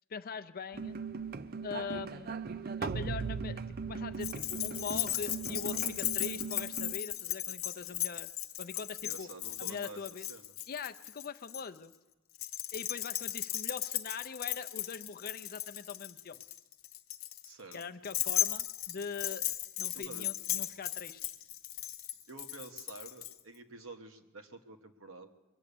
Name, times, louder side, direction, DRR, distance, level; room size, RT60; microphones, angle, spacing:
voice 1, 0.1-1.0 1.6-2.4 2.8-8.3 8.6-9.3 9.6-10.3 10.7-11.9 12.7-16.4 17.7-19.4 19.8-21.2, left 5 dB, 45° left, 10 dB, 0.5 m, -42 dB
sound 1, 0.7-6.9, right 5 dB, 45° right, 0.5 m, -39 dB
Keys jangling, 4.2-11.6 12.4-23.3, left 13 dB, 80° left, 0.8 m, -36 dB
voice 2, 9.0-10.5 17.4-17.8 19.9-20.3 22.3-25.3, right 3 dB, 70° right, 6 dB, 1.2 m, -49 dB
23.0 x 8.3 x 6.8 m, 1.1 s
head